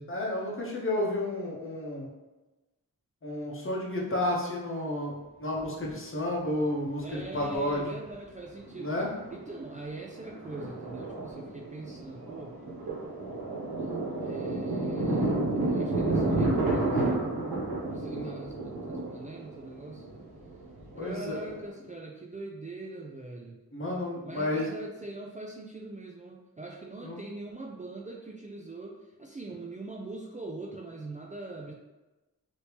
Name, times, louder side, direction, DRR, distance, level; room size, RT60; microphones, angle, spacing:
voice 1, 0.1-2.1 3.2-8.0 8.7-9.1 18.1-18.4 20.9-21.4 23.7-24.7 27.0-27.2, left 1 dB, 35° left, -3 dB, 0.9 m, -31 dB
Thunder, 5.6-5.7 7.0-7.8 8.1-8.2 8.6-8.9 9.2-21.6, right 2 dB, 85° right, 1.0 m, -31 dB
voice 2, 7.0-8.9 9.3-12.5 14.2-17.3 17.9-20.1 21.0-23.6 24.2-31.7, right 2 dB, 20° right, -1 dB, 0.4 m, -42 dB
3.3 x 2.8 x 3.0 m, 1.1 s
wide cardioid pair, 55°, 36 cm